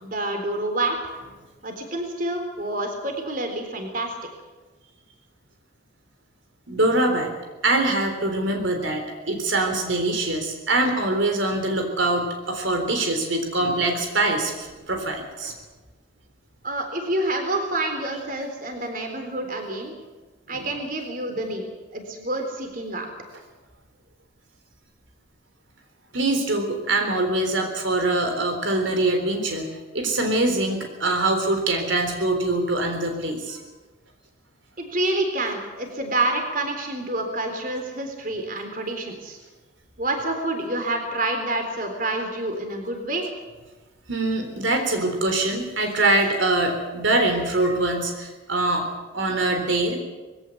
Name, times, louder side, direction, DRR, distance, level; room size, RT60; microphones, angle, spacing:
voice 1, 0.0-1.0 1.6-4.2 16.6-19.9 20.5-23.1 34.8-39.4 40.0-43.3, right 2 dB, 45° right, 4 dB, 3.8 m, -28 dB
voice 2, 6.7-7.3 7.6-14.5 14.9-15.5 20.5-20.7 26.1-29.7 29.9-33.6 44.1-48.9 49.1-50.0, right 2 dB, 75° right, 4 dB, 3.8 m, -23 dB
21.0 x 17.0 x 8.4 m, 1.2 s
head